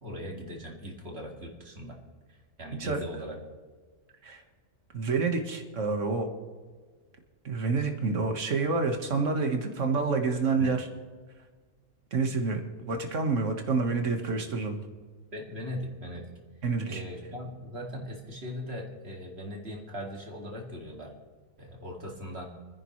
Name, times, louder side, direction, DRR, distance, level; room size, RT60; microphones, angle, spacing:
voice 1, 0.0-2.0 2.3-3.4 10.6-10.7 12.8-12.9 15.3-16.3 16.9-21.1 21.6-22.5, equal, 50° right, 0 dB, 2.6 m, -39 dB
voice 2, 4.9-6.3 7.5-10.9 12.1-14.8 16.6-17.0, right 4 dB, 70° right, 4 dB, 1.8 m, -28 dB
29.0 x 10.5 x 3.2 m, 1.5 s
omnidirectional pair, 1.3 m